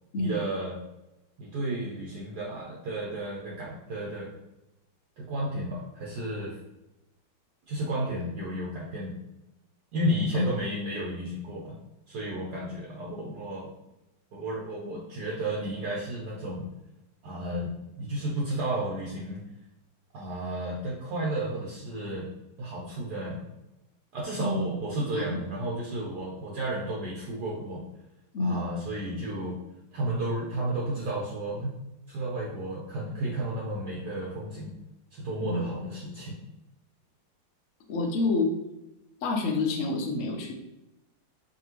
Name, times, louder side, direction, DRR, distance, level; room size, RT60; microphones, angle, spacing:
voice 1, 0.2-0.8 1.4-4.3 5.2-6.6 7.7-9.1 9.9-11.8 12.1-13.7 14.3-16.7 17.2-19.4 20.1-22.3 22.6-23.5 24.1-27.8 28.4-29.6 29.9-31.7 32.1-34.7 35.1-36.4, right 1 dB, 65° right, -4 dB, 1.2 m, -32 dB
voice 2, 24.4-24.7 25.1-25.4 28.3-28.6 35.4-35.6 37.9-38.5 39.2-40.5, left 2 dB, 60° left, 0 dB, 0.8 m, -28 dB
4.9 x 2.8 x 3.0 m, 0.94 s
omnidirectional pair, 2.1 m